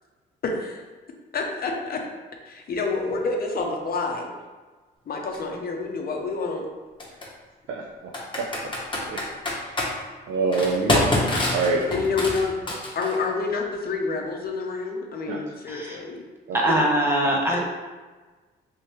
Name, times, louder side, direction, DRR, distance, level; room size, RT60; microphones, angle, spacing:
voice 1, 0.4-0.8 1.3-2.0 2.5-4.3 5.1-6.7 11.9-12.5 12.9-16.2 17.5-17.6, left 4 dB, 50° left, 2 dB, 0.6 m, -28 dB
Computer keyboard, 5.3-5.4 7.0-7.3 8.1-9.9 10.5-13.2, left 1 dB, 25° left, 0.9 m, -25 dB
voice 2, 7.7-8.1 8.4-8.5 9.1-9.2 9.5-9.9 10.3-11.0 11.5-12.1 15.3-15.4 16.5-16.6, right 3 dB, 75° right, -1 dB, 0.5 m, -26 dB
voice 3, 16.5-17.6, right 1 dB, 10° right, -3 dB, 0.9 m, -22 dB
3.3 x 3.1 x 3.0 m, 1.3 s
cardioid pair, 90°, 20 cm